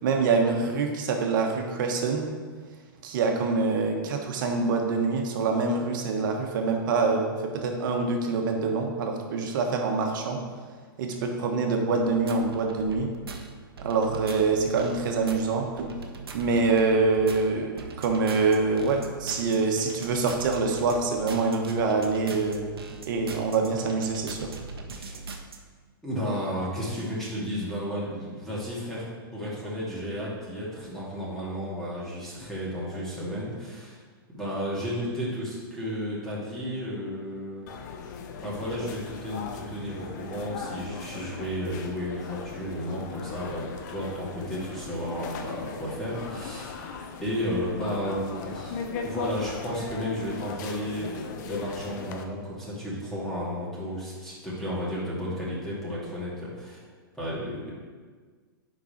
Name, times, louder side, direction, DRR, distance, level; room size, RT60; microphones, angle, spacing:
voice 1, 0.0-2.3 3.0-10.4 11.0-13.1 13.8-15.9 16.3-17.7 18.0-22.7 23.1-24.5, right 4 dB, 55° right, 2 dB, 1.4 m, -25 dB
sound 1, 12.0-25.6, right 3 dB, 85° right, 0.9 m, -40 dB
voice 2, 26.0-29.1 29.3-34.0 34.3-37.7 38.4-46.7 47.2-48.8 49.0-56.8 57.2-57.7, equal, 5° left, -8 dB, 2.3 m, -33 dB
sound 2, 37.7-52.2, left 5 dB, 50° left, 0.8 m, -38 dB
8.2 x 5.3 x 4.5 m, 1.5 s
hypercardioid pair, 130°, 12 cm